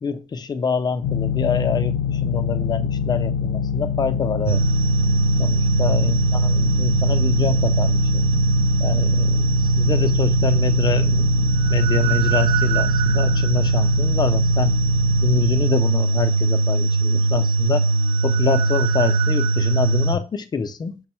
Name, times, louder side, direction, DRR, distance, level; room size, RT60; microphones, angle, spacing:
voice 1, 0.0-4.6 5.4-8.2 8.8-9.5 9.8-14.8 15.2-17.9 18.2-21.0, left 5 dB, 30° left, 9 dB, 0.4 m, -26 dB
sound 1, 1.0-15.7, left 6 dB, 85° left, 0.5 m, -26 dB
sound 2, 4.5-20.1, right 3 dB, 70° right, 0.7 m, -20 dB
6.1 x 2.0 x 4.3 m, 0.31 s
wide cardioid pair, 175°, 15 cm